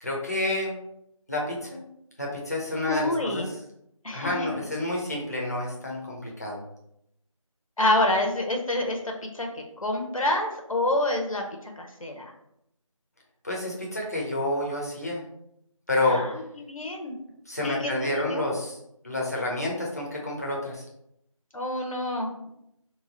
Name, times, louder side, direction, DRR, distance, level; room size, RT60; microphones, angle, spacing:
voice 1, 0.0-0.7 1.3-1.8 2.2-3.6 4.1-6.6 13.4-15.2 15.9-16.2 17.5-18.8 19.0-20.8, left 2 dB, 30° left, -3 dB, 0.8 m, -29 dB
voice 2, 2.9-3.5 4.0-4.6 7.8-12.3 16.1-17.1 17.6-18.4 21.5-22.5, left 1 dB, 75° left, 1 dB, 1.0 m, -28 dB
3.5 x 3.0 x 4.0 m, 0.77 s
figure-of-eight pair, 175°, 17 cm